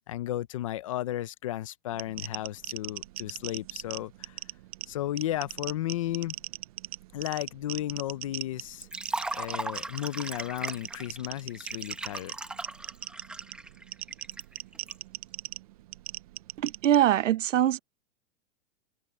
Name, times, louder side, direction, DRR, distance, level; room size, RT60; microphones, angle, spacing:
voice 1, 0.1-4.4 4.9-6.4 7.1-8.9 9.3-12.3, left 13 dB, 30° left, 0.4 m, -34 dB
sound 1, 1.9-17.0, right 16 dB, 30° right, 0.5 m, -41 dB
Liquid, 8.8-14.9, right 2 dB, 5° right, 0.8 m, -38 dB
voice 2, 16.6-17.8, right 11 dB, 90° right, 1.1 m, -23 dB
supercardioid pair, 165°, 37 cm